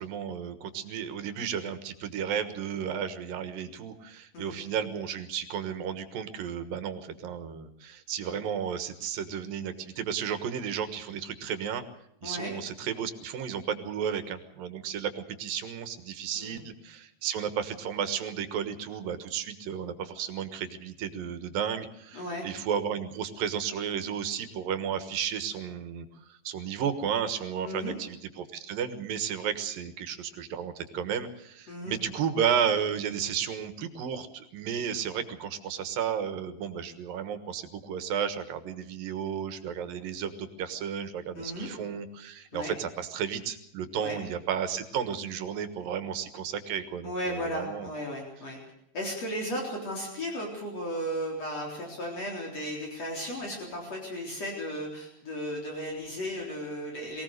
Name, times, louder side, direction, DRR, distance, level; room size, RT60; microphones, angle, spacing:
voice 1, 0.0-11.8 12.2-47.9, right 8 dB, 85° right, 10 dB, 3.2 m, -33 dB
voice 2, 22.1-22.5 27.6-27.9 31.7-32.0 41.4-41.7 42.5-42.7 43.9-44.2 47.0-48.6 48.9-57.2, equal, 50° left, 0 dB, 4.9 m, -35 dB
23.0 x 17.5 x 6.6 m, 0.78 s
omnidirectional pair, 3.9 m